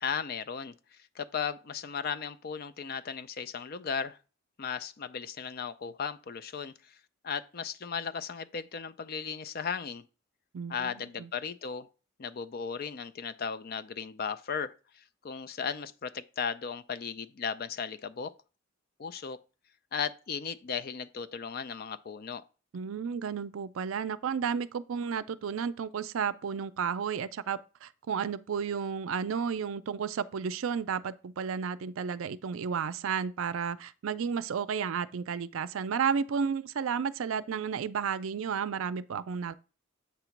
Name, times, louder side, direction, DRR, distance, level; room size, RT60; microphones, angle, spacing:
voice 1, 0.0-4.2 4.6-6.9 7.2-10.0 10.7-11.9 12.2-18.3 19.0-19.4 19.9-22.4, left 6 dB, 45° left, 0.4 m, -36 dB
voice 2, 10.5-11.3 22.7-39.6, right 6 dB, 80° right, 0.4 m, -32 dB
8.0 x 3.0 x 5.8 m
head